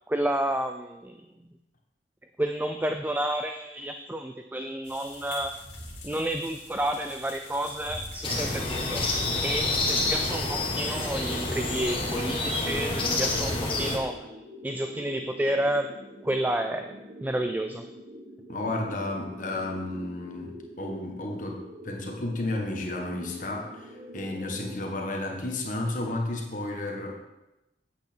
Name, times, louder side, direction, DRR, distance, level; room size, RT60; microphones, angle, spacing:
voice 1, 0.1-1.2 2.4-5.6 6.0-9.1 9.4-14.3 14.6-15.9 16.2-16.9 17.2-17.9, right 1 dB, 10° right, 6 dB, 0.3 m, -30 dB
sound 1, 4.8-10.8, left 2 dB, 85° left, 2.4 m, -45 dB
sound 2, 8.2-14.0, left 2 dB, 30° left, 1.5 m, -28 dB
sound 3, 8.4-24.8, equal, 55° right, 1.7 m, -45 dB
voice 2, 18.5-27.1, left 2 dB, 45° left, 1 dB, 1.3 m, -32 dB
8.4 x 8.0 x 4.4 m, 0.95 s
head